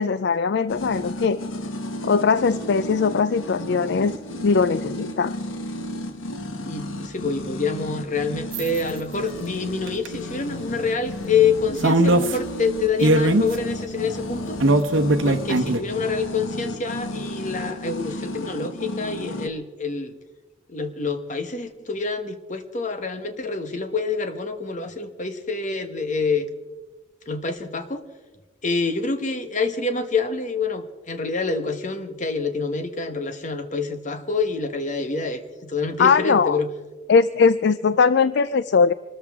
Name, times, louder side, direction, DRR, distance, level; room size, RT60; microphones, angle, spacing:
voice 1, 0.0-1.4 2.0-4.1 4.4-5.4 36.0-36.6 37.1-38.9, left 5 dB, 55° left, 15 dB, 0.4 m, -20 dB
sound 1, 0.7-19.5, left 1 dB, 80° left, 1.2 m, -33 dB
voice 2, 6.6-14.6 15.2-20.1 20.7-26.5 27.3-28.0 28.6-36.7, left 4 dB, 40° left, 7 dB, 1.2 m, -27 dB
sound 2, 8.5-8.8 9.9-10.1 11.8-12.4 13.0-13.6 14.6-15.8, right 1 dB, 75° right, 1.0 m, -19 dB
25.5 x 13.5 x 3.6 m, 1.2 s
head